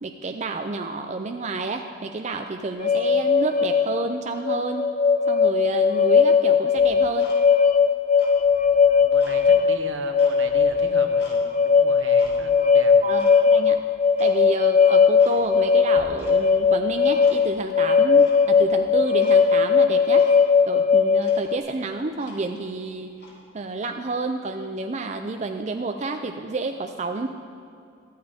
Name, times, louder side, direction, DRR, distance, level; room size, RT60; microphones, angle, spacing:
voice 1, 0.0-4.9 5.3-7.3 13.0-13.8 14.2-20.3 20.7-23.1 23.5-27.3, right 3 dB, 35° right, 6 dB, 0.4 m, -29 dB
sound 1, 2.8-21.6, left 6 dB, 40° left, 0.6 m, -19 dB
Tick-tock, 6.8-7.8 8.1-9.4 9.8-11.4 11.8-12.4 12.8-13.4 13.7-13.8 14.1-14.4 14.8-14.9 15.2-15.7 15.9-16.6 16.9-17.7 18.2-18.8 19.2-19.4 19.7-19.8 20.2-20.4 20.9-21.0 21.2-22.7 23.1-23.4, left 2 dB, 55° left, 2.6 m, -46 dB
voice 2, 8.7-12.9, right 3 dB, 80° right, 5 dB, 1.1 m, -38 dB
14.0 x 13.0 x 3.6 m, 2.4 s
head